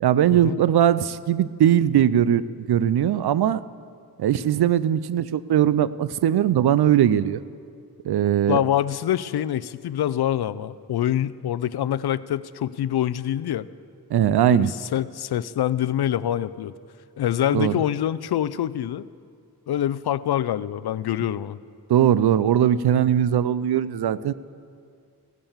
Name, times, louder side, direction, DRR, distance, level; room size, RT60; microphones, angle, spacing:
voice 1, 0.0-2.4 2.7-3.6 4.2-7.4 8.0-8.6 14.1-14.7 17.5-17.7 21.9-24.3, right 10 dB, 80° right, 16 dB, 0.5 m, -20 dB
voice 2, 8.5-13.6 14.4-16.7 17.2-19.0 19.7-21.6, left 11 dB, 80° left, 17 dB, 0.5 m, -25 dB
16.5 x 8.8 x 7.2 m, 2.2 s
wide cardioid pair, 120°, 38 cm